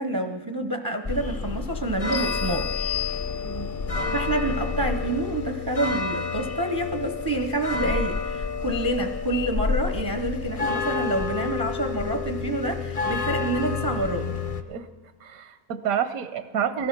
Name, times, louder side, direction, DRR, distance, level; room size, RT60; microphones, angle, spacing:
voice 1, 0.0-2.7 3.0-3.1 4.1-14.3, right 1 dB, 25° right, 6 dB, 0.4 m, -28 dB
sound 1, 1.1-14.6, left 4 dB, 40° left, 0.5 m, -29 dB
sound 2, 2.1-3.8, left 14 dB, 60° left, 0.9 m, -33 dB
voice 2, 3.4-3.8 14.7-14.9 15.2-16.9, right 8 dB, 85° right, 11 dB, 1.2 m, -29 dB
18.0 x 12.5 x 5.9 m, 1.2 s
omnidirectional pair, 1.5 m